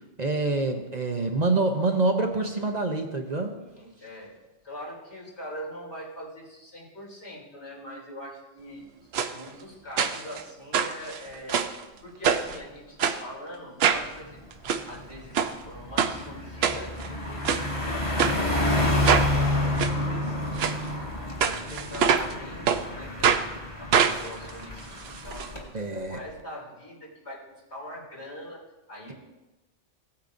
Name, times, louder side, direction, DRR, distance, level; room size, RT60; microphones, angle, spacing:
voice 1, 0.2-3.6 25.7-26.2, right 3 dB, 40° right, 3 dB, 0.8 m, -26 dB
voice 2, 3.5-4.3 4.6-8.8 9.3-11.6 12.0-14.4 14.9-15.4 15.6-20.7 21.4-25.7 26.1-28.6 28.9-29.1, equal, 75° left, -5 dB, 3.4 m, -42 dB
sound 1, 9.1-9.3 10.0-10.4 10.7-11.8 12.2-12.6 13.0-13.2 13.8-14.1 14.5-14.8 15.3-15.5 16.0-16.1 16.6-17.1 17.4-17.6 18.2-18.4 19.0-19.3 19.8-19.9 20.6-20.8 21.4-22.3 22.7-22.8 23.2-23.4 23.9-25.5 25.7-25.8 26.1-26.2, right 7 dB, 65° right, 0.9 m, -24 dB
Car passing by, 14.0-14.3 14.7-25.6, left 1 dB, 25° left, 1.8 m, -29 dB
16.5 x 8.5 x 2.6 m, 1.1 s
omnidirectional pair, 1.2 m